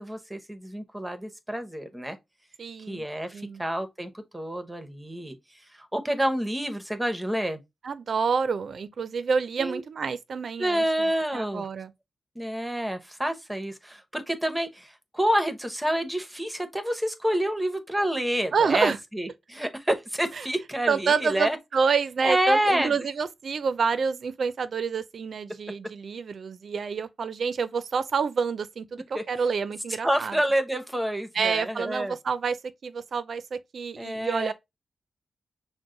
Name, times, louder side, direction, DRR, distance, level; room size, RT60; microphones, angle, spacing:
voice 1, 0.0-2.2 2.9-5.4 5.7-7.6 9.6-9.8 10.6-11.7 12.4-21.6 22.2-22.9 29.1-29.2 30.0-32.2 34.0-34.5, equal, 10° right, 0.8 m, -28 dB
voice 2, 2.6-3.0 3.3-3.6 7.8-11.9 18.5-19.0 20.4-20.5 20.9-30.4 31.3-34.5, right 5 dB, 65° right, 0.4 m, -28 dB
6.1 x 2.1 x 3.8 m
wide cardioid pair, 100°, 0 cm